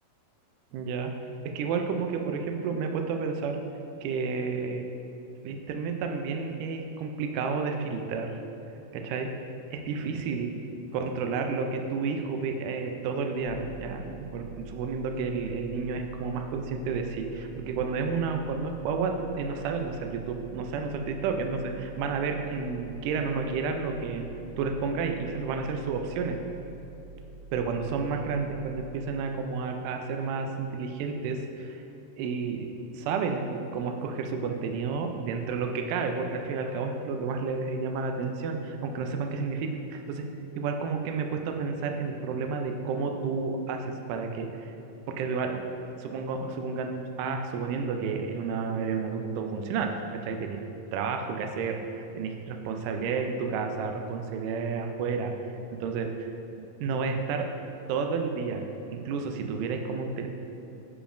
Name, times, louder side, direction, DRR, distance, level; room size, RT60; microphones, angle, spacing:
voice 1, 0.7-1.1 1.5-3.6 4.0-4.9 5.4-8.3 8.9-9.3 9.7-10.5 10.9-24.2 24.6-26.4 27.5-31.8 32.2-40.2 40.6-44.7 45.2-45.6 46.0-50.6 50.9-55.3 55.8-56.3 56.8-57.5 57.9-60.3, right 5 dB, 80° right, 4 dB, 1.9 m, -31 dB
sound 1, 13.4-29.2, right 2 dB, 85° left, 1.5 m, -47 dB
9.7 x 5.0 x 2.5 m, 3.0 s
omnidirectional pair, 4.1 m